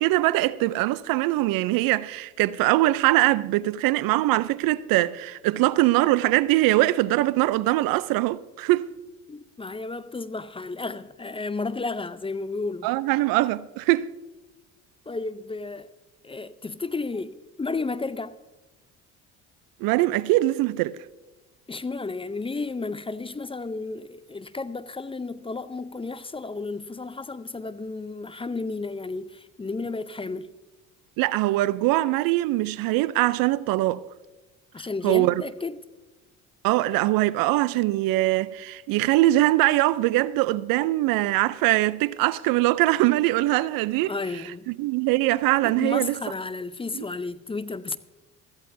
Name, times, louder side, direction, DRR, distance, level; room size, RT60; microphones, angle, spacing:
voice 1, 0.0-8.9 12.8-14.1 19.8-21.0 31.2-34.0 35.0-35.4 36.6-44.1 44.7-46.2 46.9-47.1, right 17 dB, 65° right, 0.6 m, -22 dB
voice 2, 9.3-12.9 15.1-15.9 16.2-18.3 21.7-30.5 34.7-35.8 44.0-44.7 45.6-48.0, left 3 dB, 15° left, 0.6 m, -32 dB
16.0 x 14.0 x 2.6 m
hypercardioid pair, 65°, 38 cm